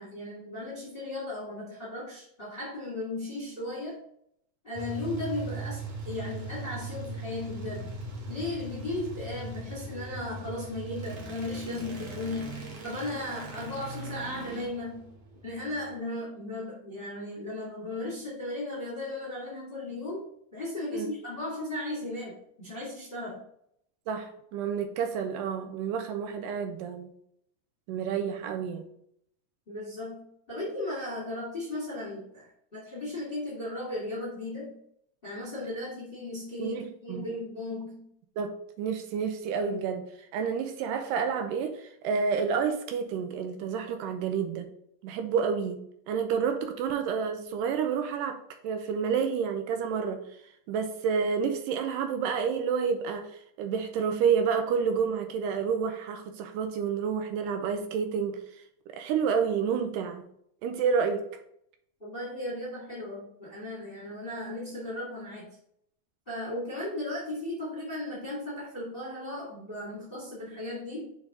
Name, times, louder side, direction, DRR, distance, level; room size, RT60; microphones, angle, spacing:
voice 1, 0.0-4.0 4.6-7.9 8.3-15.1 15.4-23.4 29.7-34.8 35.2-38.1 62.0-65.6 66.2-71.1, left 2 dB, 20° left, -6 dB, 1.6 m, -36 dB
sound 1, 4.8-15.9, right 2 dB, 55° right, 2.0 m, -39 dB
voice 2, 24.1-27.1 27.9-28.9 36.6-37.2 38.4-44.7 45.0-45.8 46.1-50.4 50.7-58.4 58.9-60.3 60.6-61.3, right 6 dB, 85° right, 6 dB, 2.2 m, -29 dB
5.5 x 4.7 x 3.8 m, 0.72 s
omnidirectional pair, 3.7 m